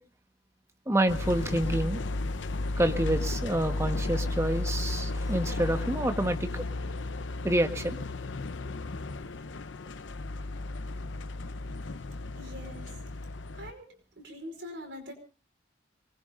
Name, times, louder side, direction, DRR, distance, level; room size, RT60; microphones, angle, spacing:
voice 1, 0.9-2.0 2.8-6.6 7.4-8.0, right 1 dB, 15° right, 6 dB, 1.3 m, -28 dB
sound 1, 1.1-13.7, left 2 dB, 85° left, 0.7 m, -34 dB
voice 2, 12.4-12.9 13.6-15.1, left 1 dB, 75° right, 5 dB, 5.0 m, -43 dB
26.0 x 20.5 x 2.6 m, 0.35 s
head